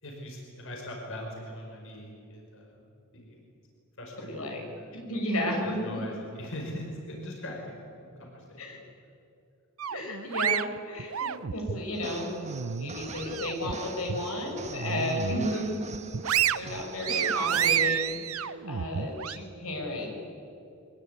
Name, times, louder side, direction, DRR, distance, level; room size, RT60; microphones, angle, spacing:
voice 1, 0.0-2.8 3.1-3.4 4.0-5.1 5.8-8.8 10.3-10.4, left 1 dB, 65° left, 0 dB, 5.1 m, -41 dB
voice 2, 4.3-4.6 4.9-6.0 8.6-8.8 9.9-12.3 12.8-16.0 16.5-20.1, left 1 dB, 90° left, 1 dB, 6.1 m, -33 dB
sound 1, 9.8-11.8 12.3-13.7 14.1-14.3 14.7-15.5 15.9-19.4, right 9 dB, 75° right, 0.7 m, -30 dB
sound 2, 12.0-18.0, right 4 dB, 35° right, 1.8 m, -43 dB
24.0 x 20.5 x 9.5 m, 2.5 s
head